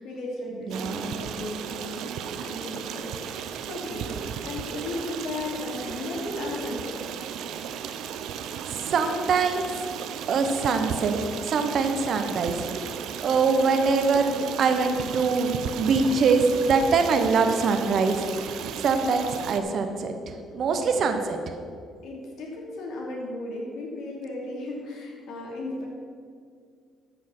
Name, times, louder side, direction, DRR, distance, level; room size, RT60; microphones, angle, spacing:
voice 1, 0.0-2.1 2.4-4.1 4.4-7.0 20.7-21.2 22.0-25.9, left 2 dB, 75° left, -2 dB, 2.8 m, -35 dB
voice 2, 0.7-1.2 8.6-9.6 10.3-12.7 13.2-18.3 18.8-21.4, right 4 dB, 60° right, 6 dB, 1.1 m, -24 dB
Stream, 0.7-19.6, right 8 dB, 75° right, 0.6 m, -35 dB
13.0 x 5.5 x 6.2 m, 2.2 s
supercardioid pair, 75°, 0 cm